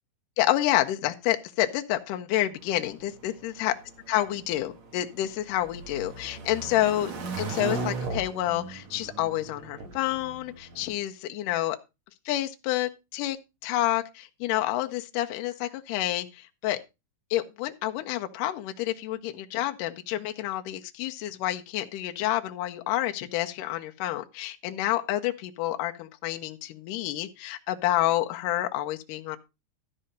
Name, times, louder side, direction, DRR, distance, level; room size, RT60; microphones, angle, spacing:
voice 1, 0.4-3.8 4.1-7.1 7.4-11.8 12.3-13.4 13.6-16.8 17.3-29.4, left 14 dB, 80° left, 2.2 m, -29 dB
sound 1, 2.6-10.9, right 4 dB, 55° right, 2.9 m, -38 dB
12.5 x 5.5 x 5.2 m
omnidirectional pair, 4.0 m